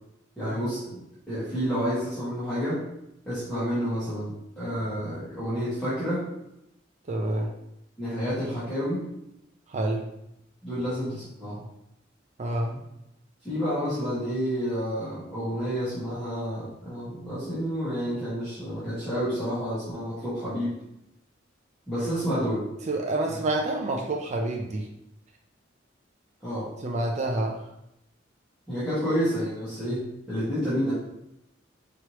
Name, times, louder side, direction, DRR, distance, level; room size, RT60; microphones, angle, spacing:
voice 1, 0.4-1.0 1.3-2.8 3.3-6.3 8.0-9.1 10.6-11.6 13.4-20.8 21.9-22.7 26.4-26.7 28.7-30.9, equal, 5° left, -15 dB, 1.6 m, -29 dB
voice 2, 7.1-7.5 9.7-10.0 12.4-12.9 22.9-24.9 26.8-27.6, right 2 dB, 40° right, 0 dB, 0.4 m, -28 dB
4.8 x 3.0 x 3.1 m, 0.83 s
head